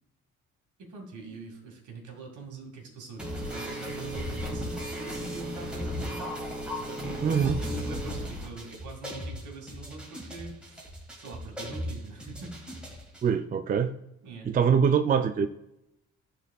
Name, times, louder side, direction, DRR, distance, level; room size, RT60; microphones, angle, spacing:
voice 1, 0.8-6.3 6.8-10.9 11.2-12.5 14.2-14.5, right 4 dB, 75° right, 1 dB, 2.1 m, -44 dB
sound 1, 3.2-13.2, equal, 5° right, 1.9 m, -36 dB
voice 2, 7.2-7.6 13.2-13.9 14.4-15.5, right 7 dB, 30° right, 9 dB, 0.4 m, -24 dB
12.5 x 4.1 x 2.3 m, 0.86 s
cardioid pair, 90°, 30 cm